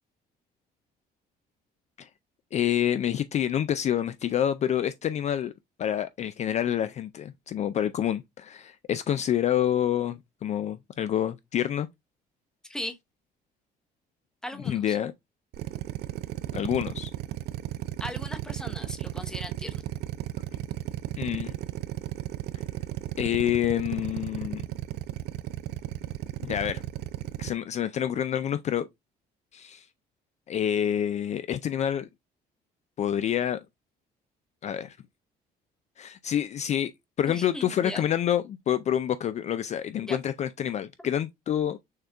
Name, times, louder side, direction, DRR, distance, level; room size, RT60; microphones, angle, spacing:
voice 1, 2.5-5.5 5.8-11.9 14.7-15.1 16.5-17.1 21.2-21.5 23.2-24.6 26.4-26.8 27.4-28.9 29.5-29.9 30.5-32.1 33.0-33.6 34.6-35.0 36.0-36.9 37.2-41.8, left 10 dB, 40° left, 0.4 m, -27 dB
voice 2, 12.6-13.0 14.4-15.0 18.0-19.8 37.3-38.0 40.0-40.2, left 1 dB, 5° left, 0.8 m, -38 dB
Drill, 15.5-27.5, right 14 dB, 75° right, 0.4 m, -34 dB
6.5 x 2.3 x 3.4 m
cardioid pair, 110°, 17 cm